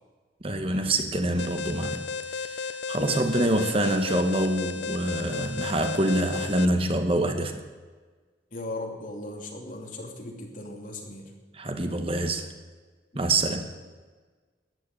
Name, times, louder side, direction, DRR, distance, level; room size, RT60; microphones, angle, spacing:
voice 1, 0.4-2.0 2.3-7.6 11.5-12.5 13.1-13.7, right 1 dB, 30° right, 7 dB, 1.1 m, -26 dB
Alarm, 1.4-6.7, left 5 dB, 90° left, 0.7 m, -34 dB
voice 2, 8.5-11.2 13.1-13.4, left 2 dB, 50° left, 1 dB, 2.8 m, -37 dB
14.0 x 9.4 x 9.2 m, 1.4 s
head